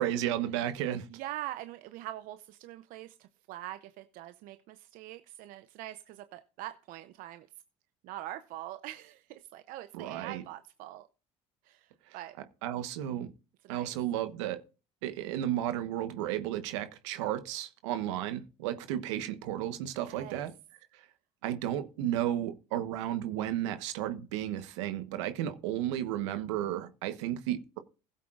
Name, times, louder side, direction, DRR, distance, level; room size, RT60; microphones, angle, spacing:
voice 1, 0.0-1.1 9.9-10.4 12.6-13.3 13.7-14.6 15.0-20.5 21.4-27.8, right 12 dB, 90° right, 1.2 m, -33 dB
voice 2, 1.1-7.5 8.0-11.1 11.6-12.3 13.6-13.9 20.0-20.4, right 14 dB, 70° right, 0.7 m, -43 dB
16.5 x 8.2 x 2.5 m
supercardioid pair, 80°, 15 cm